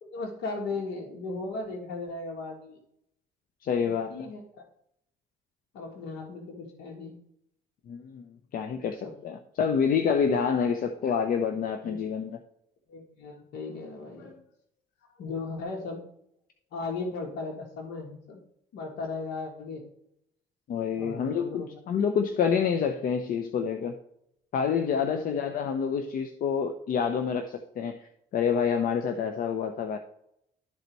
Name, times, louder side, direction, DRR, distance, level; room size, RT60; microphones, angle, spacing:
voice 1, 0.0-2.8 3.8-4.4 5.7-7.1 9.0-9.1 11.9-12.0 12.9-14.4 15.2-16.0 16.7-18.4 18.7-19.8 21.0-21.7 25.0-25.2, left 3 dB, 80° left, 0 dB, 1.7 m, -36 dB
voice 2, 3.6-4.3 7.9-8.2 8.5-12.4 20.7-24.0 24.5-30.0, left 6 dB, 55° left, 6 dB, 0.8 m, -28 dB
12.0 x 4.0 x 4.6 m, 0.74 s
cardioid pair, 110°, 17 cm